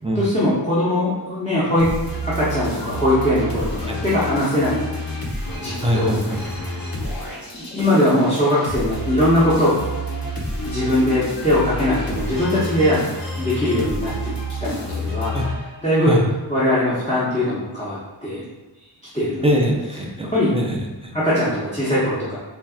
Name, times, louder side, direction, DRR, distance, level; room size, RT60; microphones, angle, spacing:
voice 1, 0.1-1.9 2.2-4.8 5.5-6.1 7.5-9.8 10.6-13.0 13.4-14.3 14.6-15.3 15.8-16.2 16.5-18.4 19.1-19.6 20.3-20.5 21.1-22.4, left 1 dB, 15° left, -11 dB, 1.0 m, -20 dB
sound 1, 1.8-16.1, equal, 55° left, 1.0 m, -29 dB
voice 2, 5.8-6.4 15.3-15.5 16.0-16.2 19.4-21.1, equal, 15° right, 0 dB, 0.5 m, -22 dB
4.2 x 3.3 x 2.4 m, 1.1 s
wide cardioid pair, 80°, 42 cm